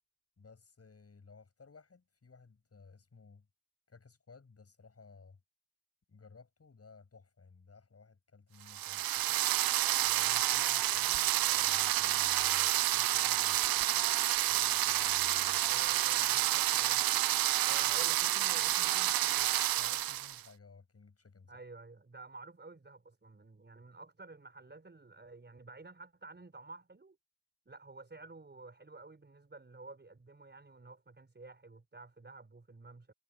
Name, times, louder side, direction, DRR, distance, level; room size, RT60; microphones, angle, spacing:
voice 1, 0.4-3.5 3.9-5.4 6.1-9.4 10.0-14.1 14.5-15.7 16.1-16.2 17.8-18.0 19.8-21.6, left 4 dB, 40° left, 7.8 m, -57 dB
sound 1, 8.7-20.4, right 14 dB, 65° right, 0.6 m, -29 dB
voice 2, 15.6-17.1 17.7-19.5 21.5-27.2 27.6-33.1, right 3 dB, 30° right, 5.0 m, -51 dB
supercardioid pair, 55°, 38 cm